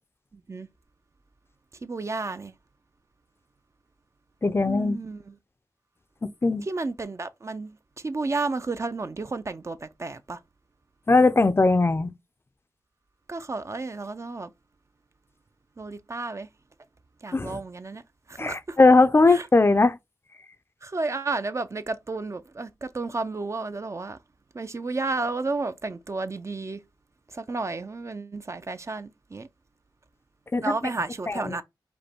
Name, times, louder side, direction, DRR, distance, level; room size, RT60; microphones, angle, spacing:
voice 1, 0.3-0.7 1.8-2.5 4.6-5.4 6.6-10.4 13.3-14.5 15.8-16.5 17.2-18.0 18.3-18.8 19.3-19.5 20.8-24.2 24.5-26.8 27.3-29.5 30.6-31.6, right 3 dB, 40° right, 0.4 m, -32 dB
voice 2, 4.4-5.0 6.2-6.6 11.1-12.1 17.3-17.6 18.4-20.0 30.5-30.7 31.3-31.6, left 3 dB, 30° left, 0.4 m, -20 dB
5.1 x 2.1 x 4.3 m
wide cardioid pair, 85°, 8 cm